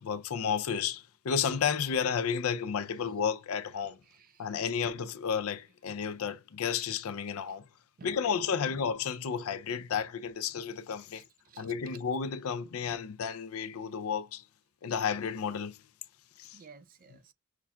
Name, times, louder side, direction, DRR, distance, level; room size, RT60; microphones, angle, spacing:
voice 1, 0.0-4.0 4.4-7.6 8.0-11.2 11.6-14.4 14.8-15.8 16.4-16.6, left 7 dB, 70° left, 0.4 m, -32 dB
voice 2, 4.0-4.5 8.0-8.8 11.1-12.0 16.5-17.3, right 5 dB, 40° right, 0.4 m, -54 dB
5.7 x 2.3 x 2.2 m
head